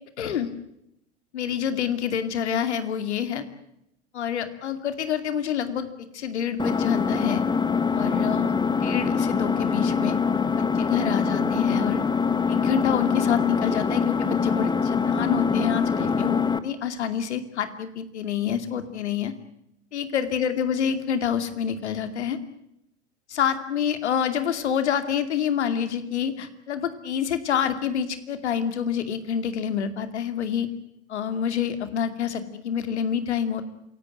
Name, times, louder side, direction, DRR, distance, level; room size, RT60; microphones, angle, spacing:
voice 1, 0.2-0.5 1.3-3.4 4.1-5.9 6.1-7.4 7.9-8.5 8.8-10.1 10.5-12.0 12.5-19.3 19.9-22.4 23.3-30.7 31.1-33.6, left 8 dB, 75° left, 10 dB, 2.6 m, -27 dB
Engine, 6.6-16.6, left 5 dB, 10° left, 1.5 m, -24 dB
27.0 x 18.0 x 9.1 m, 0.80 s
figure-of-eight pair, 80°, 34 cm